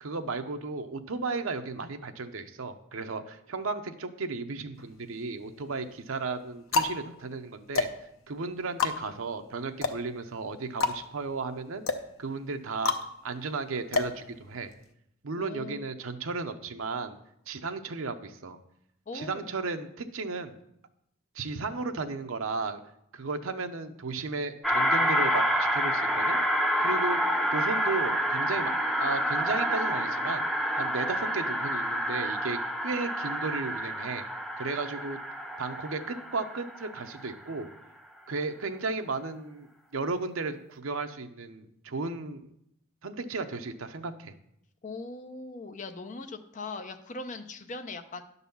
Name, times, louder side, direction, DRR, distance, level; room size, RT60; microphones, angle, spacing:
voice 1, 0.0-7.9 8.3-11.9 12.2-13.0 13.2-14.7 15.2-17.2 17.5-18.6 19.1-20.6 21.3-22.8 23.1-26.4 26.8-28.7 29.0-30.4 30.7-34.3 34.6-35.2 35.6-37.7 38.3-42.5 43.0-44.3, right 3 dB, 70° right, 7 dB, 0.7 m, -34 dB
sound 1, 4.8-5.5 6.2-14.9, left 4 dB, 70° left, 0.7 m, -32 dB
voice 2, 15.3-15.9 19.1-19.5 44.8-48.2, left 3 dB, 35° left, 7 dB, 0.7 m, -40 dB
sound 2, 24.6-37.3, equal, ahead, 0.6 m, -28 dB
10.5 x 4.1 x 7.0 m, 0.76 s
head